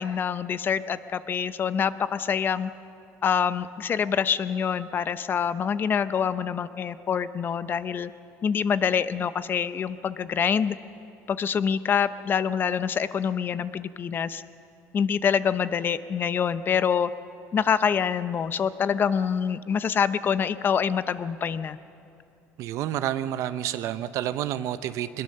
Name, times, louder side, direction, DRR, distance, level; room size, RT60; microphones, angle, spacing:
voice 1, 0.0-2.7 3.2-8.1 8.4-10.8 11.3-14.4 14.9-17.1 17.5-21.8, left 7 dB, 35° left, 14 dB, 0.7 m, -26 dB
voice 2, 22.6-25.2, right 12 dB, 65° right, 12 dB, 0.7 m, -29 dB
22.0 x 21.0 x 6.6 m, 2.6 s
cardioid pair, 110°, 6 cm